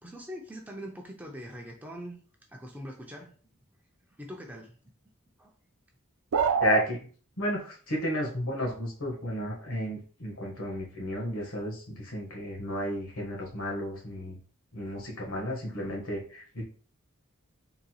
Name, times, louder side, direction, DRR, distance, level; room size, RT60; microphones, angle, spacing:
voice 1, 0.0-2.2 2.5-3.3 4.2-4.8 5.4-5.5, equal, 10° right, 0 dB, 0.6 m, -42 dB
sound 1, 6.3-6.9, right 6 dB, 70° right, 0.4 m, -24 dB
voice 2, 6.6-7.0 7.4-14.4 14.7-16.6, left 1 dB, 65° left, -1 dB, 1.5 m, -33 dB
4.5 x 3.9 x 2.3 m, 0.41 s
head